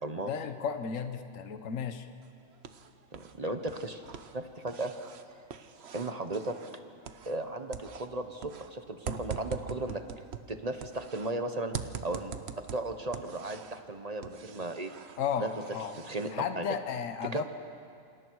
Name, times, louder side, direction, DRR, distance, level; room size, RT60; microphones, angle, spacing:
voice 1, 0.2-2.1 15.2-16.0 16.3-17.4, left 7 dB, 70° left, 8 dB, 1.3 m, -34 dB
sound 1, 2.2-3.3 3.6-7.5 7.7-11.3 11.7-13.8 14.2-16.3, right 7 dB, 55° right, 1.0 m, -43 dB
voice 2, 3.1-4.0 4.3-4.9 5.3-5.4 5.9-6.6 7.3-10.0 10.5-11.7 12.0-14.9 15.4-15.5 16.0-16.6 17.3-17.4, right 2 dB, 30° right, 7 dB, 1.1 m, -35 dB
28.0 x 26.0 x 4.7 m, 2.4 s
omnidirectional pair, 1.4 m